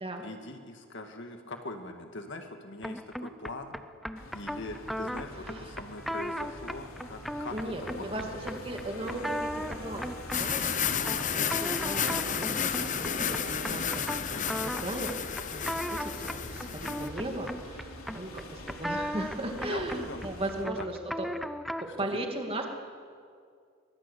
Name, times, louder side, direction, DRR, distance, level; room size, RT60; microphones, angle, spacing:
voice 1, 0.0-3.8 4.3-8.2 19.6-20.3 20.6-20.9 22.0-22.2, left 2 dB, 55° left, 5 dB, 1.9 m, -42 dB
sound 1, 2.8-22.0, equal, ahead, 0.6 m, -38 dB
sound 2, 4.2-20.6, left 1 dB, 80° left, 3.3 m, -44 dB
voice 2, 5.4-5.8 7.5-14.4 14.6-21.3 22.0-22.7, right 1 dB, 25° right, 3 dB, 2.5 m, -37 dB
sound 3, 10.3-17.1, left 8 dB, 35° left, 0.9 m, -32 dB
23.5 x 20.0 x 8.4 m, 2.2 s
head